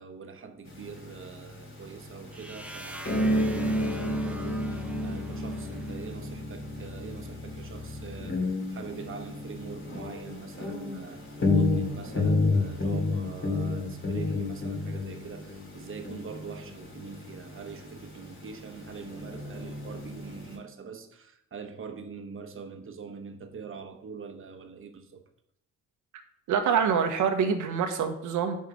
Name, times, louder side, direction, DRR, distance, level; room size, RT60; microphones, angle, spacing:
voice 1, 0.0-25.2, right 5 dB, 45° right, 1.1 m, -43 dB
sound 1, 0.7-20.6, left 2 dB, 45° left, 2.3 m, -31 dB
sound 2, 2.3-6.2, right 1 dB, 5° right, 0.8 m, -44 dB
voice 2, 26.5-28.6, right 7 dB, 80° right, 1.1 m, -25 dB
5.6 x 5.4 x 6.3 m
cardioid pair, 90°, 30 cm